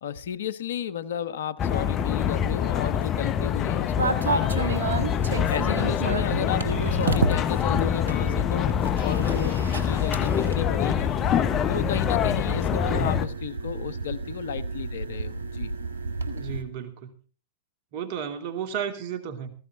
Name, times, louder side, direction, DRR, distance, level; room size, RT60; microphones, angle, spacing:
voice 1, 0.0-4.8 5.1-8.7 9.0-11.1 11.7-15.7, left 8 dB, 75° left, 14 dB, 1.2 m, -33 dB
sound 1, 1.6-13.3, left 9 dB, 35° left, 1.1 m, -25 dB
sound 2, 4.0-16.6, right 4 dB, 85° right, 1.6 m, -32 dB
voice 2, 12.9-13.2 16.3-17.1 17.9-19.5, right 8 dB, 55° right, 8 dB, 2.7 m, -33 dB
18.0 x 15.0 x 3.6 m, 0.39 s
hypercardioid pair, 100°, 0 cm